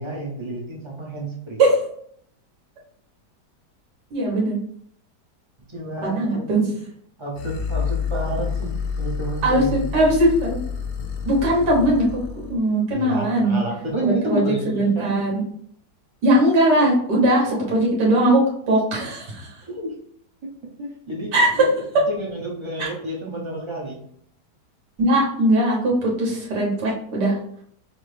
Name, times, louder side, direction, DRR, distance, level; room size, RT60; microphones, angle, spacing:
voice 1, 0.0-1.6 5.7-6.6 7.2-10.0 12.9-15.2 17.5-17.6 19.7-19.9 20.4-20.5 20.8-21.6 22.1-24.0, right 2 dB, 30° right, -2 dB, 0.5 m, -30 dB
voice 2, 4.1-4.6 6.0-6.6 9.4-10.6 11.2-12.1 12.5-13.6 14.0-15.4 16.2-19.5 21.3-21.5 22.8-22.9 25.0-27.4, right 1 dB, 80° right, -2 dB, 1.8 m, -20 dB
sound 1, 7.4-12.6, left 6 dB, 65° left, 0.9 m, -28 dB
6.0 x 2.0 x 3.2 m, 0.66 s
omnidirectional pair, 1.8 m